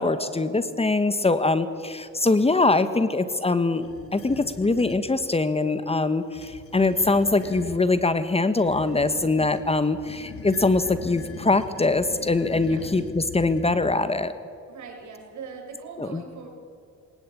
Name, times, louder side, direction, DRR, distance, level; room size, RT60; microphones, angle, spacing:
voice 1, 0.0-14.3 16.0-16.2, left 3 dB, 20° left, 12 dB, 1.3 m, -23 dB
sound 1, 3.8-5.1 6.2-7.8 8.6-14.1, left 5 dB, 50° left, 2.2 m, -41 dB
voice 2, 14.7-16.5, right 5 dB, 75° right, 1 dB, 7.0 m, -40 dB
22.0 x 20.0 x 8.6 m, 2.3 s
cardioid pair, 90°, 30 cm